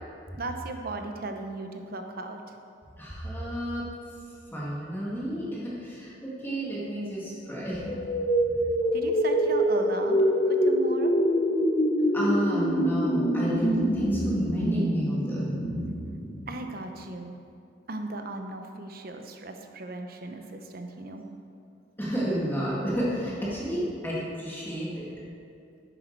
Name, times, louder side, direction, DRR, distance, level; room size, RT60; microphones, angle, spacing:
voice 1, 0.3-2.6 8.9-10.2 10.5-11.1 16.5-17.3 17.9-21.2, right 2 dB, 50° right, 5 dB, 0.8 m, -36 dB
voice 2, 3.0-3.8 4.5-7.9 12.1-15.5 22.0-25.1, equal, 10° left, -7 dB, 2.0 m, -31 dB
sound 1, 7.8-16.7, equal, 30° left, 1.0 m, -25 dB
10.0 x 8.2 x 4.6 m, 2.4 s
head